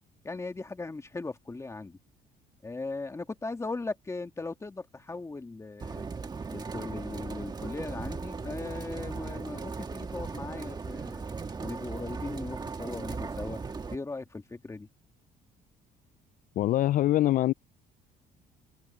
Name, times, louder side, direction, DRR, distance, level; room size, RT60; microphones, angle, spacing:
voice 1, 0.2-2.0 2.6-6.1 6.5-11.3 11.6-13.6 13.9-14.9, left 3 dB, 15° left, 2.3 m, -38 dB
sound 1, 5.8-14.0, right 4 dB, 25° right, 1.5 m, -37 dB
voice 2, 16.6-17.5, left 14 dB, 55° left, 0.4 m, -24 dB
cardioid pair, 110°, 17 cm